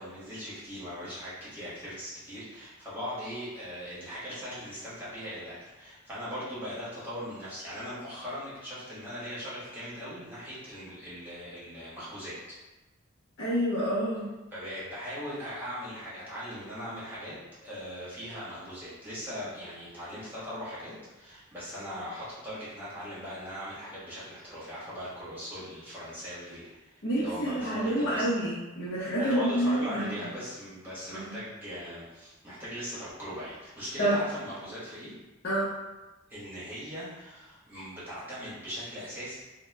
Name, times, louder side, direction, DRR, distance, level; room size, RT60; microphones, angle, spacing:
voice 1, 0.0-12.4 14.5-17.4 17.6-28.3 29.2-35.1 36.3-39.3, equal, 10° right, -10 dB, 1.0 m, -40 dB
voice 2, 13.4-14.3 27.0-30.1 31.1-31.2 34.0-34.2 35.4-35.7, right 1 dB, 60° left, -10 dB, 0.7 m, -28 dB
2.8 x 2.1 x 3.3 m, 1.1 s
head